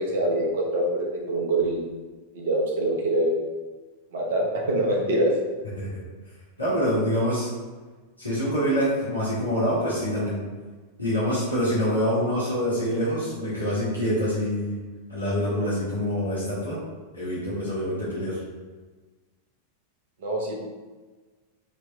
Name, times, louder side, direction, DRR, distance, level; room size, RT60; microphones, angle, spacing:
voice 1, 0.0-1.8 2.3-3.3 4.1-5.3 20.2-20.6, right 1 dB, 55° right, -1 dB, 0.8 m, -24 dB
voice 2, 5.8-7.5 8.2-10.4 11.0-14.8 15.1-16.8 17.1-18.4, equal, 85° left, -10 dB, 1.2 m, -26 dB
3.3 x 3.0 x 3.4 m, 1.3 s
figure-of-eight pair, 90°, 0 cm